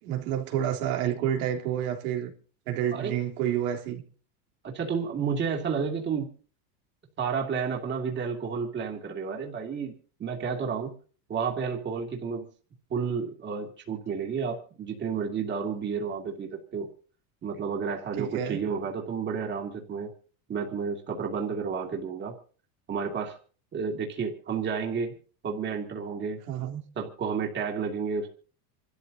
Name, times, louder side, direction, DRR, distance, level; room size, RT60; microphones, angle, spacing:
voice 1, 0.0-2.3 2.7-4.0 18.2-18.6 26.5-26.8, right 10 dB, 80° right, 3.5 m, -29 dB
voice 2, 4.6-6.3 7.2-9.9 10.2-10.9 11.3-12.5 12.9-16.9 17.4-20.1 20.5-22.3 22.9-23.4 23.7-25.1 25.4-26.4 26.9-28.3, right 6 dB, 25° right, 2.7 m, -31 dB
27.5 x 13.0 x 2.8 m
supercardioid pair, 150°, 44 cm